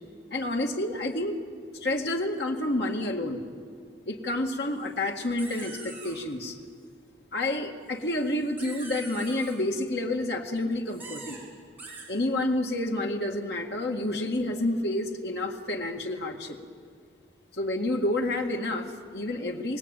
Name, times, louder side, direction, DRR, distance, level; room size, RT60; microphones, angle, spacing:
voice 1, 0.3-1.4 1.7-3.4 4.1-6.6 7.3-11.4 12.1-16.6 17.5-19.8, left 1 dB, 70° left, 2 dB, 2.0 m, -29 dB
sound 1, 4.8-4.9 5.2-6.2 8.0-9.6 10.9-11.4 11.8-12.0, right 3 dB, 10° right, 7.2 m, -43 dB
27.0 x 19.0 x 9.1 m, 2.3 s
head